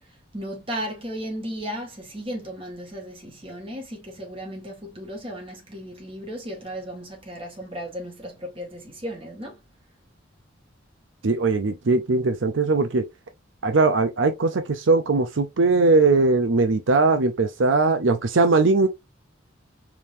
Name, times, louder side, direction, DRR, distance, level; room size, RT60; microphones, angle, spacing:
voice 1, 0.3-9.6, equal, 30° right, 2.0 m, -35 dB
voice 2, 11.2-13.1 13.6-18.9, right 3 dB, 80° right, 0.6 m, -20 dB
4.7 x 3.6 x 2.7 m
head